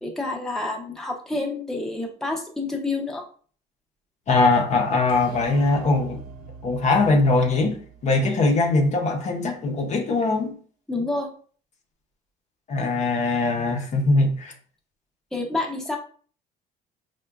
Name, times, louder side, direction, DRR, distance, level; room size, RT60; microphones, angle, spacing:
voice 1, 0.0-3.2 10.9-11.3 15.3-16.0, left 2 dB, 5° left, 0.7 m, -28 dB
voice 2, 4.3-6.2 6.6-10.5 12.7-14.5, left 3 dB, 45° left, 0.6 m, -21 dB
sound 1, 5.1-8.7, right 6 dB, 60° right, 0.5 m, -42 dB
4.7 x 2.1 x 2.3 m
cardioid pair, 110°, 17 cm